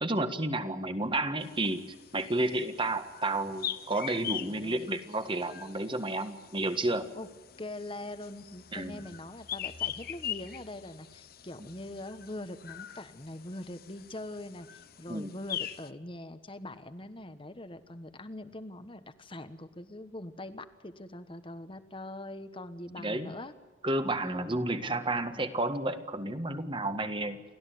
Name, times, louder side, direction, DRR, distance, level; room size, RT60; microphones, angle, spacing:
voice 1, 0.0-1.8 2.1-7.1 8.7-9.0 15.1-15.3 23.0-23.3 23.8-27.4, right 2 dB, 25° right, 9 dB, 1.6 m, -31 dB
voice 2, 0.6-0.9 4.2-4.9 7.1-7.3 7.6-23.5 24.2-24.6, left 1 dB, 25° left, 11 dB, 1.3 m, -43 dB
sound 1, 1.4-15.9, left 10 dB, 50° left, 0.9 m, -42 dB
30.0 x 13.5 x 9.4 m, 1.3 s
head